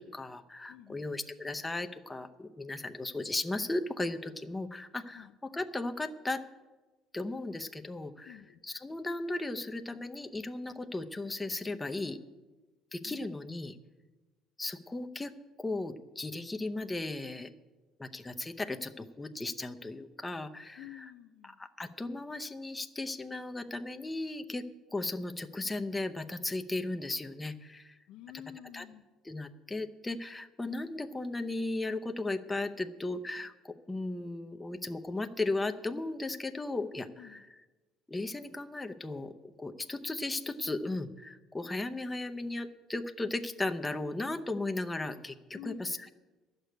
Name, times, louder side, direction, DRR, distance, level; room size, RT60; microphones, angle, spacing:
voice 1, 0.0-5.3 5.5-6.4 7.1-8.4 8.6-12.2 12.9-13.8 14.6-15.3 15.6-17.5 18.0-21.1 21.4-24.6 24.9-27.9 28.7-28.8 29.2-37.5 38.1-46.1, left 2 dB, 15° left, 7 dB, 0.7 m, -36 dB
voice 2, 0.7-1.1 5.1-5.3 8.3-8.6 13.0-13.3 20.8-21.6 28.1-29.0 37.2-37.4 45.5-45.9, left 12 dB, 75° left, 10 dB, 0.5 m, -49 dB
11.0 x 6.7 x 9.2 m, 1.2 s
cardioid pair, 105°, 0 cm